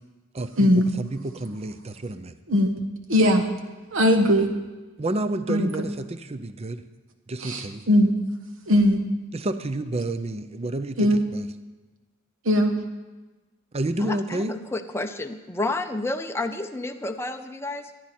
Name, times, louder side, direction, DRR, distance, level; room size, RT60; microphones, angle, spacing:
voice 1, 0.3-2.3 5.0-6.8 7.3-7.8 9.3-11.5 13.7-14.6, right 2 dB, 30° right, 11 dB, 0.5 m, -30 dB
voice 2, 3.1-3.4 3.9-4.5 5.5-5.7 7.4-8.1 8.7-9.0 11.0-11.2 12.4-12.7, equal, 70° right, 6 dB, 1.3 m, -19 dB
voice 3, 14.0-17.9, left 2 dB, 10° left, 6 dB, 0.6 m, -30 dB
15.0 x 11.0 x 4.3 m, 1.2 s
head